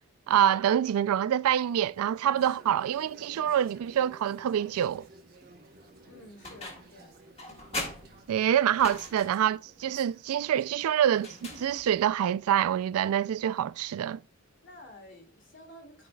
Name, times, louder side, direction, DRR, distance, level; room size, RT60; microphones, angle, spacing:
voice 1, 0.3-5.1 8.3-14.2, right 10 dB, 80° right, 0.3 m, -26 dB
sound 1, 1.5-12.0, right 2 dB, 45° right, 1.0 m, -54 dB
voice 2, 6.1-7.2 14.6-16.1, left 1 dB, 55° left, 2.2 m, -51 dB
sound 2, 6.4-7.0 7.4-9.5 11.1-12.1, left 1 dB, 30° left, 1.6 m, -40 dB
12.0 x 4.9 x 2.2 m
head